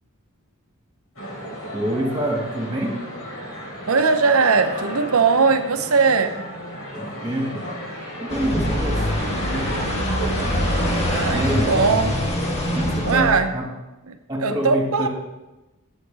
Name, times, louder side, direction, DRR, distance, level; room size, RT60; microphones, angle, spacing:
sound 1, 1.2-11.7, equal, 80° left, 3.4 m, -33 dB
voice 1, 1.7-3.1 6.9-7.7 8.2-9.1 9.5-10.0 11.3-11.8 12.7-13.7 14.3-15.1, right 1 dB, 15° right, 0 dB, 1.9 m, -27 dB
voice 2, 3.9-6.3 11.1-11.4 11.7-12.2 13.0-13.5 14.1-14.2 14.4-15.1, right 4 dB, 70° right, 8 dB, 0.7 m, -19 dB
sound 2, 8.3-13.4, equal, 30° left, 1.3 m, -24 dB
11.0 x 8.3 x 3.4 m, 1.0 s
head